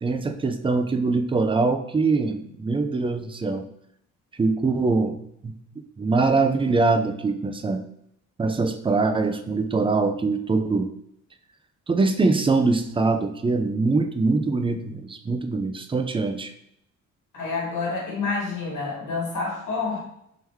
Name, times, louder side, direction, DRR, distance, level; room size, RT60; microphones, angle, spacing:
voice 1, 0.0-3.6 4.4-5.2 5.4-5.6 6.0-7.8 8.4-10.9 11.9-16.5, right 3 dB, 15° right, 7 dB, 0.4 m, -23 dB
voice 2, 17.3-20.0, left 4 dB, 80° left, -2 dB, 1.4 m, -28 dB
3.7 x 3.3 x 3.0 m, 0.74 s
cardioid pair, 105°, 31 cm